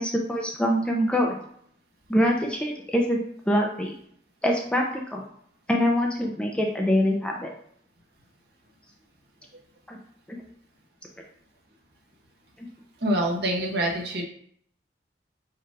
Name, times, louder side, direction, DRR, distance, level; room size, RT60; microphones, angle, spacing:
voice 1, 0.0-1.4 2.1-3.2 3.5-3.9 4.4-5.2 5.7-7.5 9.9-10.0 10.3-10.4 12.6-12.7, equal, 5° left, 0 dB, 0.4 m, -24 dB
voice 2, 13.0-14.2, right 1 dB, 60° right, 0 dB, 0.9 m, -25 dB
4.6 x 2.4 x 4.7 m, 0.66 s
head